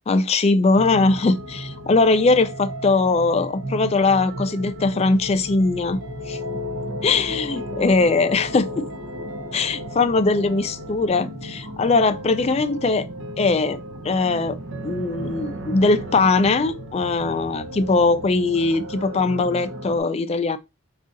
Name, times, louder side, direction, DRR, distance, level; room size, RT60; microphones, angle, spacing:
voice 1, 0.1-6.0 6.3-6.4 7.0-8.9 9.5-13.1 13.4-13.8 14.0-14.6 14.8-20.6, left 3 dB, 30° left, 0.3 m, -20 dB
sound 1, 0.8-20.0, equal, 75° right, 0.8 m, -34 dB
3.7 x 2.4 x 3.8 m
head